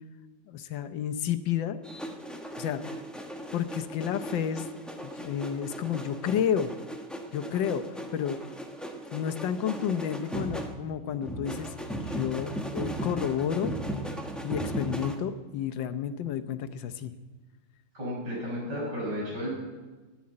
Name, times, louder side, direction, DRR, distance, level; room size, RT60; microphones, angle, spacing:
voice 1, 0.5-1.8 2.6-3.0 3.5-4.7 5.0-6.7 7.3-7.8 8.1-8.4 9.1-11.7 12.0-13.7 14.4-17.1, left 9 dB, 90° left, 10 dB, 1.5 m, -31 dB
sound 1, 1.8-15.2, equal, ahead, 0.8 m, -37 dB
voice 2, 17.9-19.5, equal, 70° right, -4 dB, 6.5 m, -33 dB
11.5 x 9.9 x 9.6 m, 1.3 s
omnidirectional pair, 2.0 m